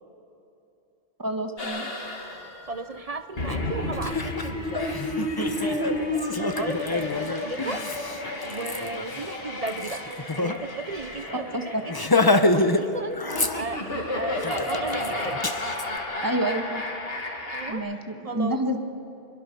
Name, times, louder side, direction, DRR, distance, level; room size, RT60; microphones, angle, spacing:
voice 1, 1.2-1.9 11.5-11.8 16.2-16.8 17.7-18.8, right 1 dB, 15° right, 4 dB, 1.7 m, -28 dB
sound 1, 1.6-17.7, left 1 dB, 50° left, 2.4 m, -32 dB
voice 2, 2.7-5.0 5.4-7.8 8.4-10.1 10.3-12.1 12.4-15.4 17.5-17.8 18.2-18.6, right 3 dB, 35° right, 11 dB, 0.8 m, -35 dB
Laughter, 3.5-3.6 3.9-10.6 10.9-11.0 11.3-11.5 11.9-12.8 13.1-14.0 14.4-15.9, left 2 dB, 20° left, 0.9 m, -27 dB
25.0 x 22.0 x 6.9 m, 3.0 s
omnidirectional pair, 1.2 m